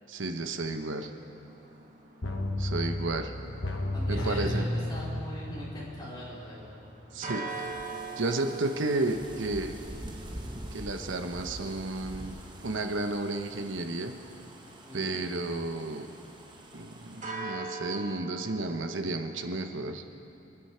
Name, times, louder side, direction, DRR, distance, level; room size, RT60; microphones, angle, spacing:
voice 1, 0.1-1.1 2.6-3.3 4.1-4.7 7.1-7.7 8.2-9.7 10.7-12.3 12.6-14.1 14.9-16.1 16.7-20.0, right 2 dB, 80° right, 6 dB, 1.0 m, -32 dB
sound 1, 1.0-19.7, right 3 dB, 40° right, 2.0 m, -45 dB
sound 2, 2.2-6.9 7.2-7.3, left 1 dB, 70° left, 1.4 m, -33 dB
voice 2, 3.9-6.8 14.9-15.1, equal, 20° left, -6 dB, 3.7 m, -41 dB
sound 3, 7.5-17.2, right 1 dB, 25° right, 1.2 m, -46 dB
29.0 x 10.0 x 4.5 m, 2.7 s
head